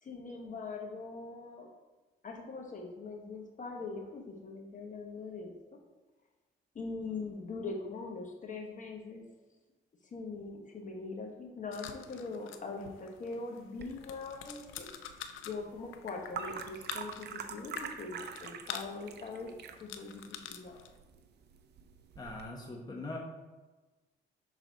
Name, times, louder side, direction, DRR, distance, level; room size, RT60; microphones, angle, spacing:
voice 1, 0.0-1.7 2.2-5.5 6.7-9.2 10.1-14.9 15.4-19.5 19.8-20.2 20.5-20.8, left 3 dB, 40° left, 1 dB, 1.2 m, -42 dB
sound 1, 11.7-21.0, left 9 dB, 85° left, 0.5 m, -47 dB
sound 2, 13.8-22.5, right 6 dB, 55° right, 0.6 m, -46 dB
voice 2, 22.2-23.2, left 2 dB, 20° left, -1 dB, 1.0 m, -41 dB
6.1 x 4.0 x 4.0 m, 1.2 s
cardioid pair, 90°, 20 cm